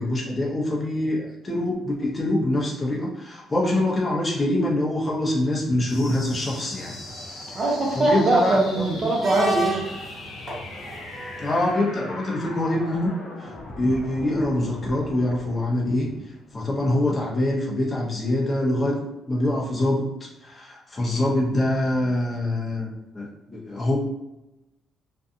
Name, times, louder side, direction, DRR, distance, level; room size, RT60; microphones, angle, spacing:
voice 1, 0.0-6.9 8.0-8.9 11.4-13.1 13.4-16.1 16.5-20.1 20.4-24.0, left 1 dB, 25° left, -4 dB, 0.7 m, -24 dB
sound 1, 5.9-16.9, left 2 dB, 90° left, 0.5 m, -41 dB
sound 2, 6.4-11.7, right 3 dB, 30° right, 1.3 m, -34 dB
voice 2, 7.5-9.8, right 2 dB, 45° right, -1 dB, 0.8 m, -21 dB
2.6 x 2.3 x 2.6 m, 0.96 s
cardioid pair, 90°, 0 cm